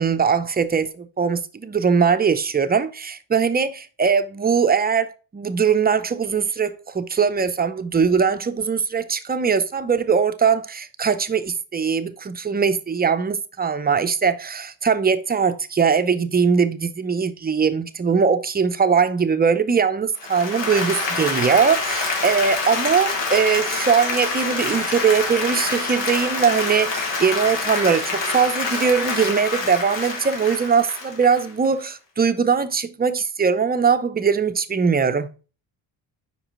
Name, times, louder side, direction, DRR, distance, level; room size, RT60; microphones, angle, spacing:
voice 1, 0.0-35.3, right 6 dB, 20° right, 0.5 m, -21 dB
Applause, 20.1-31.9, left 3 dB, 70° left, 1.6 m, -26 dB
sound 1, 22.4-27.6, left 2 dB, 45° left, 2.7 m, -47 dB
5.3 x 4.9 x 3.7 m
cardioid pair, 80°, 45 cm